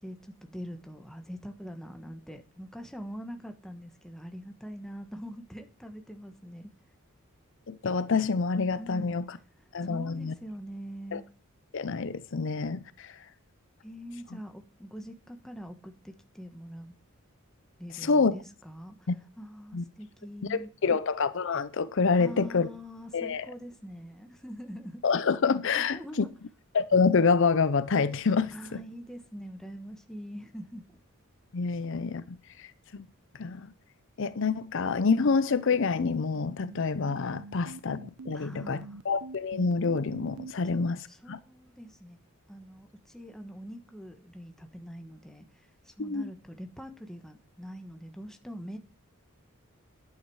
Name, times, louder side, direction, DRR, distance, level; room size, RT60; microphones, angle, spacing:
voice 1, 0.0-6.7 8.8-9.2 9.8-11.2 13.8-16.9 17.8-19.1 19.4-21.0 22.2-25.0 25.7-26.3 28.5-30.8 38.3-39.0 40.7-42.2 42.5-48.8, equal, ahead, 1.2 m, -43 dB
voice 2, 7.7-9.3 9.7-10.3 11.1-11.2 11.7-13.2 18.0-18.3 19.1-19.2 19.7-19.8 20.5-22.7 23.1-23.4 25.0-26.3 26.7-28.8 31.5-32.7 32.9-33.0 33.4-33.7 34.2-41.0 41.3-41.4 46.0-46.3, left 4 dB, 60° left, 0.6 m, -27 dB
sound 1, 34.2-40.5, right 3 dB, 85° right, 0.7 m, -45 dB
11.5 x 9.1 x 4.7 m
head